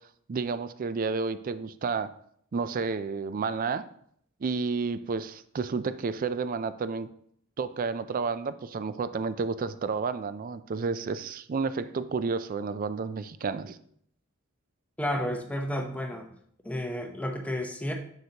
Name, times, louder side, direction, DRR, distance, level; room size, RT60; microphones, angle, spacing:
voice 1, 0.3-2.1 2.5-3.8 4.4-7.1 7.6-13.8, right 4 dB, 40° right, 13 dB, 0.4 m, -31 dB
voice 2, 15.0-16.3 16.6-17.9, left 1 dB, 5° left, 3 dB, 0.7 m, -31 dB
7.8 x 6.6 x 2.9 m, 0.66 s
head